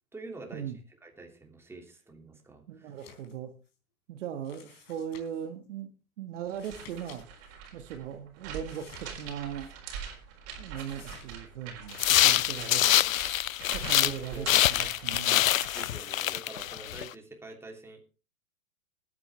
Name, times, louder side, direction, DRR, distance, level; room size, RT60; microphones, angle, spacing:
voice 1, 0.1-0.6 1.0-2.9 13.7-14.5 15.7-18.0, right 2 dB, 5° right, 2 dB, 2.9 m, -46 dB
voice 2, 2.7-3.5 4.1-5.9 6.2-7.2 7.7-9.7 10.6-13.0 13.7-15.5, right 9 dB, 60° right, 8 dB, 1.7 m, -39 dB
sound 1, 2.9-3.4 3.7-3.8 4.4-5.5 6.4-7.2 7.5-7.6 8.6-9.7 10.7-11.3, left 7 dB, 45° left, 4.2 m, -53 dB
sound 2, 6.5-16.0, right 7 dB, 35° right, 4.4 m, -44 dB
sound 3, 11.9-14.2 14.5-17.1, left 13 dB, 70° left, 0.5 m, -25 dB
20.0 x 9.7 x 3.3 m, 0.34 s
figure-of-eight pair, 105°, 42 cm